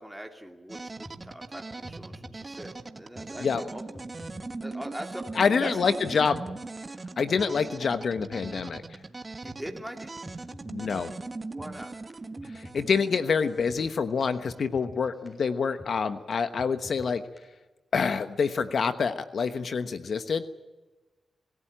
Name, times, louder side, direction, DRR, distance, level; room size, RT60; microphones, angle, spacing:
voice 1, 0.0-3.8 4.6-5.3 5.6-5.9 9.4-10.1 11.5-11.9, equal, ahead, 2 dB, 2.6 m, -41 dB
sound 1, 0.7-14.6, right 3 dB, 35° right, 1.5 m, -40 dB
sound 2, 1.0-1.2 1.6-1.7 1.8-2.3 2.6-2.7 3.1-3.3 3.7-3.8 3.9-4.5 4.7-4.8 5.3-5.4 5.8-5.9 6.0-6.6 6.8-6.9 7.4-7.5 7.9-8.7 8.9-9.0 9.5-9.6 10.0-10.1 10.3-10.8 11.0-11.1 11.6-11.7 12.1-12.2 12.4-12.9 13.1-13.2 13.7-13.8 14.2-14.3 14.5-15.0 15.3-15.4 15.8-15.9 16.3-16.4 16.6-17.1 17.4-17.5, left 1 dB, 30° left, 6.9 m, -46 dB
voice 2, 5.4-6.4 7.2-9.0 10.7-11.1 12.4-17.2 17.9-20.5, left 5 dB, 70° left, 10 dB, 1.1 m, -27 dB
26.5 x 16.0 x 9.1 m, 1.2 s
cardioid pair, 65°, 0 cm